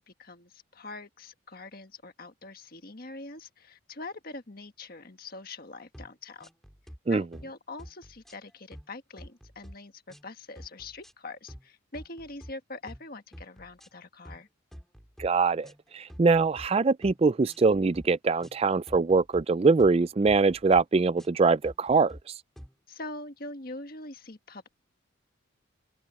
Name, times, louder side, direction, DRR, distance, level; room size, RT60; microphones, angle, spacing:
voice 1, 0.0-6.5 7.1-14.5 22.9-24.7, left 2 dB, 45° left, 1.6 m, -43 dB
sound 1, 5.9-6.1 6.4-7.0 7.3-7.5 7.8-8.9 9.2-9.8 10.1-10.3 10.6-11.1 11.5-11.7 11.9-12.5 12.9-13.1 13.3-13.9 14.2-14.4 14.7-15.3 15.6-16.7 17.0-17.2 17.5-18.1 18.4-18.6 18.9-19.4 19.8-20.0 20.2-20.8 21.2-21.4 21.6-22.2 22.6-22.7, equal, ahead, 3.4 m, -47 dB
voice 2, 15.2-15.7 15.9-22.2, right 4 dB, 30° right, 0.3 m, -23 dB
head